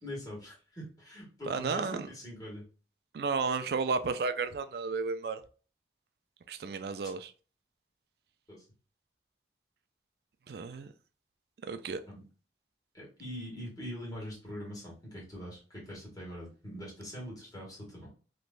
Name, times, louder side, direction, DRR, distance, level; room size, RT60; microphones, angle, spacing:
voice 1, 0.0-2.7 8.5-8.6 12.1-12.2 12.9-18.1, equal, 20° left, 1.7 m, -43 dB
voice 2, 1.5-2.1 3.1-5.4 6.5-7.3 10.5-10.9 11.6-12.0, right 4 dB, 60° right, 0.4 m, -33 dB
3.3 x 3.1 x 2.4 m
head